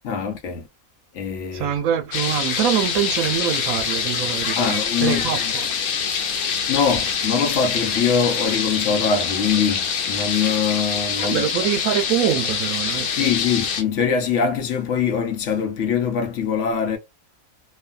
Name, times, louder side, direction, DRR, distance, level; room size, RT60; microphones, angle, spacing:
voice 1, 0.0-0.7 1.1-1.7 4.6-5.5 6.0-6.4 6.7-11.4 13.2-17.0, left 6 dB, 65° left, 0.9 m, -23 dB
voice 2, 1.5-5.7 11.2-13.3, right 10 dB, 85° right, 1.1 m, -24 dB
sound 1, 2.1-13.8, left 6 dB, 85° left, 1.1 m, -25 dB
3.0 x 2.1 x 2.3 m
omnidirectional pair, 1.5 m